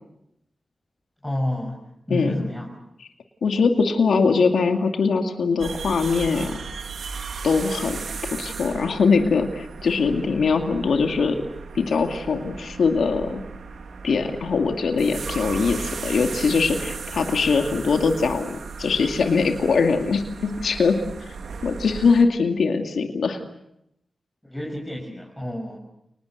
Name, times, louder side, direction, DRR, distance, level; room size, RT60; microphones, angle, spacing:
voice 1, 1.2-1.8 2.1-2.8 24.4-25.8, left 1 dB, 10° left, -1 dB, 5.9 m, -29 dB
voice 2, 3.4-6.6 7.4-8.0 8.4-11.4 11.7-13.4 14.0-21.0 21.6-23.4, left 4 dB, 85° left, 5 dB, 2.4 m, -22 dB
Earth Subway Train Pass, 5.6-22.2, right 5 dB, 85° right, 2.3 m, -36 dB
29.5 x 20.5 x 8.0 m, 0.79 s
cardioid pair, 60°, 0 cm